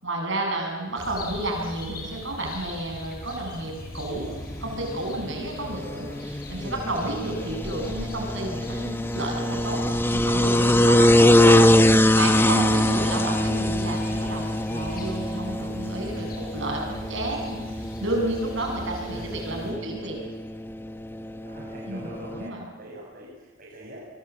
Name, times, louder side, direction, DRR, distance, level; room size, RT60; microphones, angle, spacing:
voice 1, 0.0-4.3 4.6-6.1 6.5-9.8 10.1-20.2 21.9-22.6, right 1 dB, 60° right, 1 dB, 7.4 m, -31 dB
sound 1, 1.0-19.7, left 1 dB, 45° left, 7.7 m, -40 dB
sound 2, 4.4-22.5, left 1 dB, 10° left, 0.9 m, -23 dB
voice 2, 5.6-6.1 19.1-19.7 21.4-24.1, equal, 40° right, -3 dB, 6.2 m, -43 dB
29.0 x 23.0 x 8.4 m, 1.4 s
head